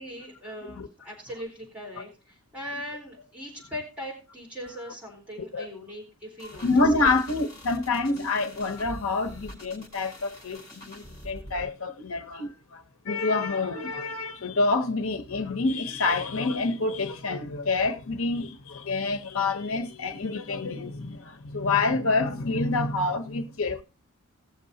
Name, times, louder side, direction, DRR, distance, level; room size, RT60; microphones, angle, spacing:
voice 1, 0.0-7.2, equal, 5° right, 4.0 m, -40 dB
sound 1, 6.4-11.7, equal, 15° left, 5.3 m, -45 dB
voice 2, 6.6-23.8, left 3 dB, 75° left, 1.0 m, -27 dB
19.0 x 6.8 x 2.8 m
head